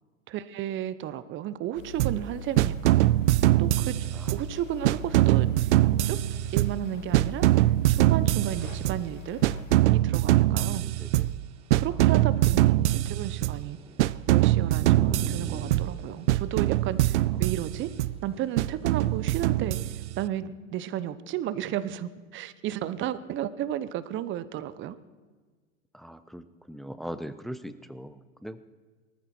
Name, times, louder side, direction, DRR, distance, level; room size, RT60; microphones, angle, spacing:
voice 1, 0.3-3.0 3.6-4.1 4.3-5.7 6.0-6.2 6.5-7.5 7.9-9.4 9.9-10.9 11.7-13.8 14.3-17.9 18.2-19.8 20.2-25.0, right 12 dB, 30° right, 15 dB, 0.8 m, -33 dB
sound 1, 1.7-9.8, left 9 dB, 80° left, 1.6 m, -43 dB
sound 2, 2.0-2.3 2.6-4.5 4.8-6.9 7.1-9.1 9.4-11.4 11.7-13.7 14.0-16.0 16.3-18.2 18.6-20.2, right 15 dB, 60° right, 0.5 m, -23 dB
sound 3, 8.2-20.0, right 3 dB, 15° right, 1.7 m, -46 dB
voice 2, 10.5-11.3 25.9-28.6, equal, ahead, 12 dB, 0.4 m, -41 dB
19.5 x 14.0 x 4.4 m, 1.4 s
hypercardioid pair, 105°, 38 cm